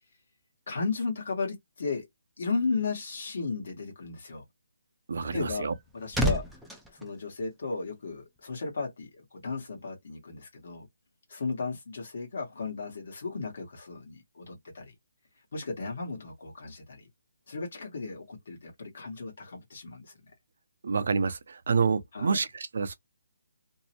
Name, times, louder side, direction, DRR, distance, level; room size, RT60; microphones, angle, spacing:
voice 1, 0.7-2.1 2.4-4.4 5.3-6.6 6.9-10.9 11.3-14.9 15.5-17.1 17.5-20.2 22.1-22.4, left 4 dB, 60° left, 1.1 m, -35 dB
voice 2, 5.1-5.7 20.8-22.9, right 5 dB, 60° right, 0.6 m, -28 dB
sound 1, 5.6-8.1 8.4-8.6, equal, ahead, 0.4 m, -33 dB
2.6 x 2.0 x 2.8 m
hypercardioid pair, 165°, 0 cm